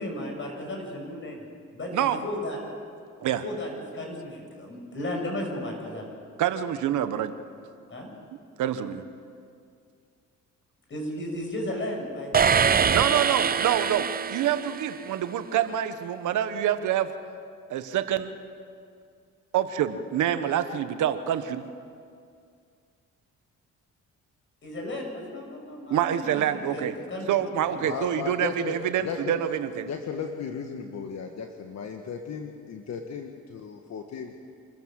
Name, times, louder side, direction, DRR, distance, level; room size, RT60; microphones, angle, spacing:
voice 1, 0.0-1.4 1.7-2.6 3.2-6.1 7.9-8.1 10.9-13.2 24.6-27.8, left 1 dB, 40° left, 1 dB, 6.7 m, -35 dB
voice 2, 6.4-7.3 8.6-9.1 12.9-17.1 17.7-18.3 19.5-21.6 25.9-27.0 27.3-29.9, right 10 dB, 80° right, 10 dB, 1.2 m, -26 dB
sound 1, 12.3-15.2, right 7 dB, 30° right, 0.6 m, -24 dB
voice 3, 27.8-28.8 29.0-29.4 29.8-34.3, left 6 dB, 60° left, 4 dB, 1.5 m, -35 dB
26.5 x 14.5 x 7.6 m, 2.3 s
cardioid pair, 90°, 30 cm